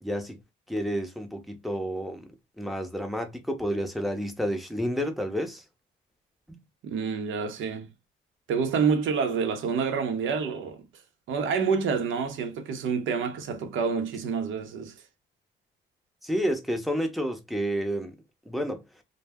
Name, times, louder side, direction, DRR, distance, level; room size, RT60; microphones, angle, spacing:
voice 1, 0.0-0.4 0.7-2.3 2.6-5.6 6.5-6.6 16.2-18.2 18.5-18.8, equal, ahead, 0.7 m, -30 dB
voice 2, 6.8-7.9 8.5-10.8 11.3-14.9, right 5 dB, 80° right, 0.7 m, -28 dB
2.2 x 2.0 x 3.4 m
cardioid pair, 90°, 20 cm